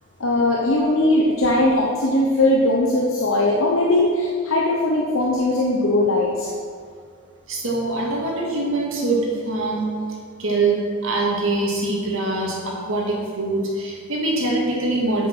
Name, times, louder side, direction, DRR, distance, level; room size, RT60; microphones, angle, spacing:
voice 1, 0.2-6.5, left 1 dB, 65° left, -2 dB, 1.0 m, -19 dB
voice 2, 7.5-9.9 10.4-15.3, right 2 dB, 65° right, -3 dB, 2.3 m, -23 dB
8.1 x 7.2 x 6.2 m, 2.1 s
head